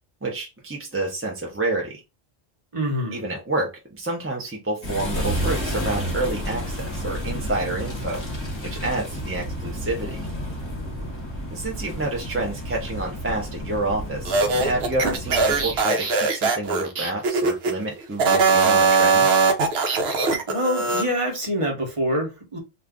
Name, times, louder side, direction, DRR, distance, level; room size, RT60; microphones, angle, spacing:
voice 1, 0.2-2.0 3.1-8.2 8.6-10.3 11.5-19.3, right 2 dB, 15° right, 0.6 m, -29 dB
voice 2, 2.7-3.2 20.5-22.6, equal, 30° right, 1.0 m, -25 dB
sound 1, 4.8-15.8, equal, 25° left, 0.9 m, -31 dB
sound 2, 14.3-17.7 18.1-21.1, right 4 dB, 70° right, 0.9 m, -20 dB
2.5 x 2.5 x 3.4 m
omnidirectional pair, 1.1 m